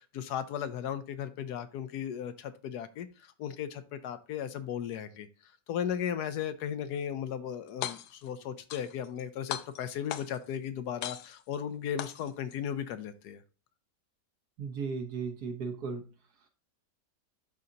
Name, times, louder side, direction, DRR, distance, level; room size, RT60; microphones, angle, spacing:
voice 1, 0.0-13.4, left 9 dB, 75° left, 12 dB, 1.1 m, -36 dB
sound 1, 7.7-8.3 8.7-9.2 9.5-10.5 11.0-11.6 12.0-12.6, left 11 dB, 90° left, 1.2 m, -38 dB
voice 2, 14.6-16.0, right 5 dB, 65° right, 5 dB, 1.6 m, -35 dB
11.5 x 3.9 x 2.8 m, 0.34 s
omnidirectional pair, 1.8 m